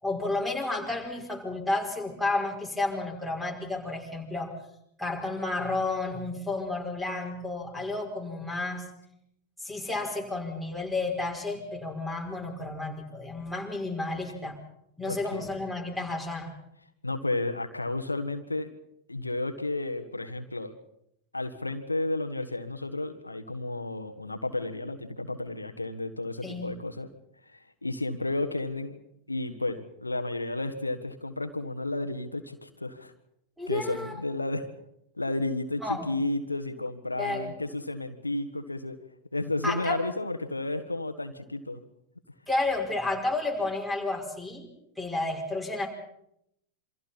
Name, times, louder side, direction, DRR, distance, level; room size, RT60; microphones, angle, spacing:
voice 1, 0.0-4.5 5.0-8.9 9.6-14.5 15.0-16.5 26.4-26.7 33.6-34.2 35.8-36.0 37.2-37.5 39.6-40.0 42.5-44.7 45.0-45.9, left 2 dB, ahead, 4 dB, 5.1 m, -31 dB
voice 2, 15.0-15.4 17.0-18.7 19.1-20.7 21.3-27.1 27.5-29.0 29.3-33.1 33.7-34.7 35.1-39.0 39.3-41.8, left 2 dB, 85° left, 8 dB, 1.6 m, -32 dB
27.5 x 25.0 x 4.4 m, 0.75 s
figure-of-eight pair, 90°, 0 cm